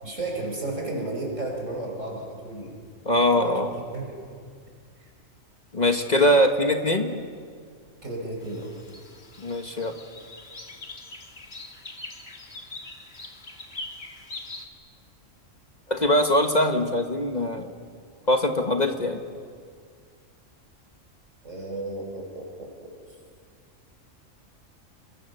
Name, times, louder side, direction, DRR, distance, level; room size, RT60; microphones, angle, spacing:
voice 1, 0.0-2.8 3.3-3.6 3.9-4.2 8.0-8.7 18.7-18.8 21.4-22.9, right 2 dB, 70° right, 0 dB, 5.8 m, -33 dB
voice 2, 3.0-3.7 5.7-7.2 9.4-9.9 15.9-17.7 18.3-19.2, left 1 dB, 35° left, 4 dB, 1.6 m, -22 dB
sound 1, 8.4-14.7, left 2 dB, 50° left, 2.4 m, -42 dB
30.0 x 22.5 x 6.9 m, 2.1 s
omnidirectional pair, 1.3 m